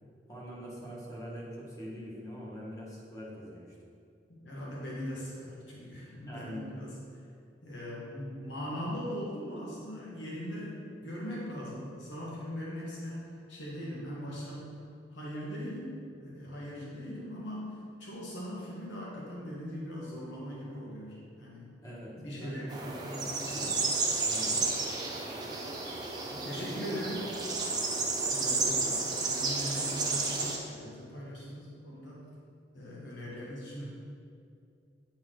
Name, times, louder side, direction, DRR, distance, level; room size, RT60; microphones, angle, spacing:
voice 1, 0.3-3.7 6.3-6.7 21.8-22.8 23.2-23.3 23.5-23.8 24.2-24.5 26.6-27.0 28.4-29.0, equal, 20° left, -4 dB, 1.4 m, -43 dB
voice 2, 4.4-7.2 7.6-14.7 15.1-21.7 22.2-23.7 24.5-24.8 26.3-27.3 28.3-32.2 32.7-33.9, equal, 85° left, -5 dB, 1.4 m, -40 dB
sound 1, 22.7-30.6, right 3 dB, 25° right, 0.8 m, -32 dB
9.5 x 4.4 x 3.8 m, 2.4 s
head